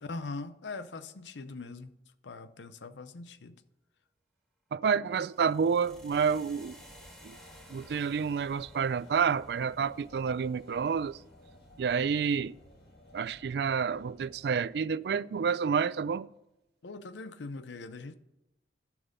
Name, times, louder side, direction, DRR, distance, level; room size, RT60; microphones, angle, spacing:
voice 1, 0.1-1.9 2.2-3.5 16.8-18.1, left 3 dB, 85° left, 0.6 m, -41 dB
voice 2, 4.7-6.8 7.2-7.4 7.7-11.2 11.8-12.5 13.1-16.3, right 6 dB, 65° right, 0.3 m, -29 dB
sound 1, 5.2-13.3, equal, 5° left, 1.6 m, -58 dB
sound 2, 5.8-15.0, left 1 dB, 55° left, 2.1 m, -56 dB
11.5 x 6.1 x 5.2 m
head